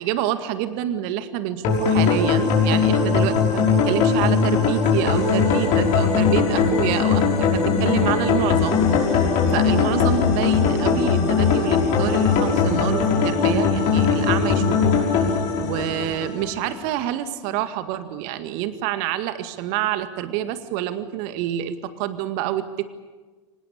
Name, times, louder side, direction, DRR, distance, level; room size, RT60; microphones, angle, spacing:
voice 1, 0.0-22.8, right 12 dB, 60° right, 10 dB, 1.9 m, -27 dB
sound 1, 1.6-16.7, left 5 dB, 50° left, 5.7 m, -20 dB
25.0 x 19.5 x 8.8 m, 1.3 s
figure-of-eight pair, 75°, 16 cm